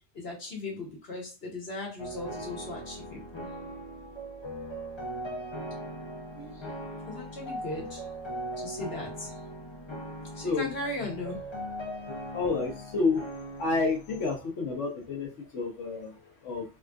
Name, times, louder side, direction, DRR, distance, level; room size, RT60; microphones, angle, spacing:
voice 1, 0.1-3.5 6.3-6.5 7.0-8.0 8.6-9.3 10.3-11.4, left 2 dB, 55° left, -2 dB, 1.6 m, -38 dB
sound 1, 2.0-14.4, equal, 35° left, 0.5 m, -39 dB
voice 2, 12.3-13.2 13.6-16.6, left 4 dB, 75° left, 1 dB, 1.2 m, -30 dB
3.5 x 2.4 x 2.3 m, 0.31 s
omnidirectional pair, 1.2 m